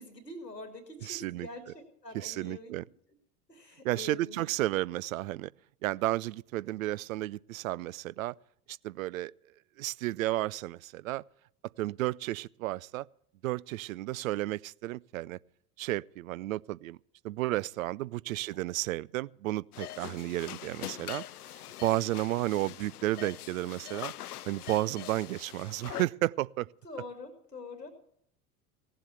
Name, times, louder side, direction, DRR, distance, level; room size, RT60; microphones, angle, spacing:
voice 1, 0.0-2.7 3.5-4.6 18.5-18.6 26.8-27.9, left 3 dB, 85° left, 2.7 m, -45 dB
voice 2, 1.0-1.5 2.1-2.8 3.8-5.5 5.8-8.3 8.7-9.3 9.8-11.2 11.8-13.1 13.4-15.4 15.8-17.0 17.2-21.2 21.8-24.1 24.5-26.7, right 16 dB, 60° right, 0.5 m, -32 dB
sound 1, 19.7-26.0, left 13 dB, 70° left, 0.6 m, -43 dB
17.5 x 7.7 x 8.2 m
figure-of-eight pair, 75°, 47 cm